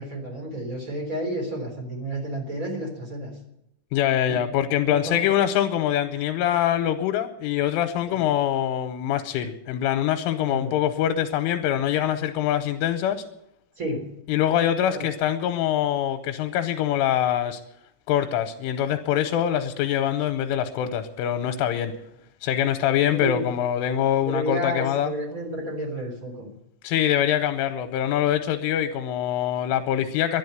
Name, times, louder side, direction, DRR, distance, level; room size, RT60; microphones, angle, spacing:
voice 1, 0.0-3.3 4.8-5.4 8.1-8.2 10.5-10.7 13.8-14.0 14.9-15.0 23.1-23.5 24.2-26.5, right 1 dB, 20° right, 3 dB, 2.9 m, -31 dB
voice 2, 3.9-13.2 14.3-17.6 18.1-21.9 22.4-25.1 26.8-30.4, left 10 dB, 85° left, 7 dB, 3.3 m, -24 dB
12.0 x 11.0 x 9.4 m, 0.83 s
omnidirectional pair, 5.9 m